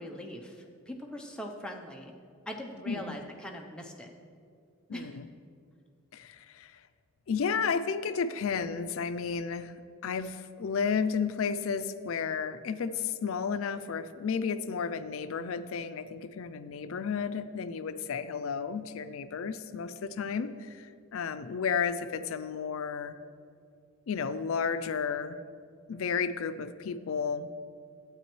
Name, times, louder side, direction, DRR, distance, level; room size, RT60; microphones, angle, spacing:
voice 1, 0.0-2.1 2.5-4.1 4.9-5.2, equal, 5° left, 1 dB, 0.6 m, -41 dB
voice 2, 2.9-3.2 4.9-5.3 6.1-6.8 7.3-9.7 10.0-23.2 24.1-25.4 25.9-27.5, left 6 dB, 75° left, 12 dB, 0.4 m, -32 dB
12.0 x 8.5 x 3.1 m, 2.3 s
head